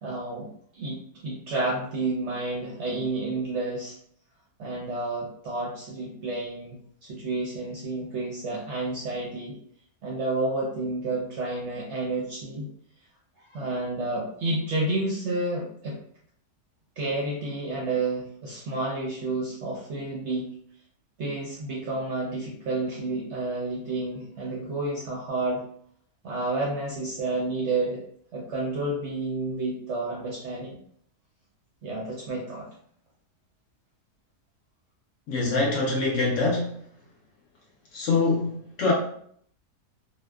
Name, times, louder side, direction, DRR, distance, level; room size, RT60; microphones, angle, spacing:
voice 1, 0.0-4.0 4.6-6.8 7.1-9.6 10.0-12.7 13.5-16.0 17.0-20.5 21.2-25.6 26.2-28.0 28.3-30.8 31.8-32.7, right 2 dB, 65° right, -3 dB, 0.7 m, -30 dB
voice 2, 35.3-36.7 37.9-38.9, left 3 dB, 65° left, -3 dB, 0.8 m, -24 dB
2.7 x 2.0 x 2.2 m, 0.63 s
omnidirectional pair, 1.6 m